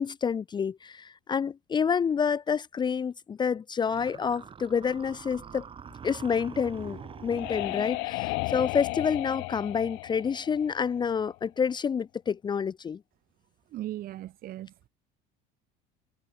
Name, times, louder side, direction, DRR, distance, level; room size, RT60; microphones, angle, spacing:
voice 1, 0.0-5.6 6.0-13.0, left 6 dB, 25° left, 0.8 m, -28 dB
sound 1, 3.9-8.2, right 7 dB, 30° right, 3.2 m, -45 dB
sound 2, 6.8-11.4, left 27 dB, 75° left, 6.5 m, -34 dB
voice 2, 13.7-14.9, right 14 dB, 50° right, 4.7 m, -38 dB
cardioid pair, 130°, 19 cm